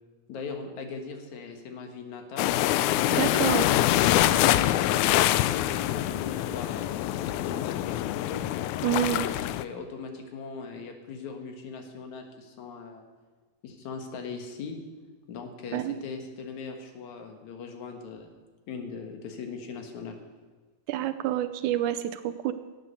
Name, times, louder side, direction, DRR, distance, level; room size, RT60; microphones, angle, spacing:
voice 1, 0.3-2.5 5.2-8.4 9.3-13.0 13.6-14.8 15.3-18.3 18.7-20.2, left 5 dB, 65° left, 4 dB, 2.6 m, -40 dB
sound 1, 2.4-9.6, left 14 dB, 90° left, 1.7 m, -25 dB
voice 2, 3.1-3.7 8.8-9.3 15.7-16.0 20.9-22.5, right 12 dB, 80° right, 11 dB, 1.9 m, -28 dB
16.5 x 8.6 x 6.7 m, 1.3 s
omnidirectional pair, 3.9 m